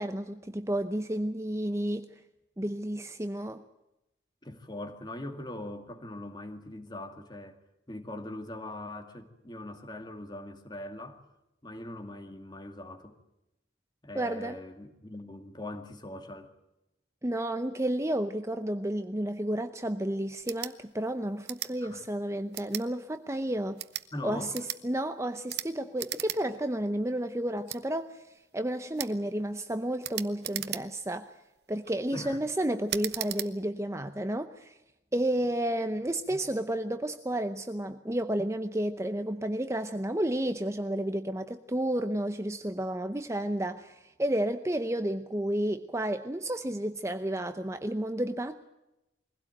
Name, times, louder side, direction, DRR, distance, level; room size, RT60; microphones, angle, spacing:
voice 1, 0.0-2.1 2.6-3.6 14.1-14.6 17.2-23.8 24.2-28.2 28.5-31.3 31.7-34.8 35.1-48.7, right 1 dB, 15° right, 9 dB, 0.7 m, -31 dB
voice 2, 4.4-7.6 7.9-11.2 11.6-13.2 14.0-16.5 21.8-22.0 24.1-24.5 32.1-32.4 36.3-36.4, left 1 dB, 25° left, 7 dB, 2.1 m, -41 dB
sound 1, 20.4-20.7 21.4-21.7 22.5-22.9 23.7-24.1 24.5-24.8 25.5-25.7 26.0-26.4 26.7-26.8 27.7-27.8 29.0-29.1 30.0-31.1 31.6-31.9 32.9-33.5, right 13 dB, 60° right, 1.0 m, -36 dB
22.5 x 16.5 x 9.0 m, 0.91 s
head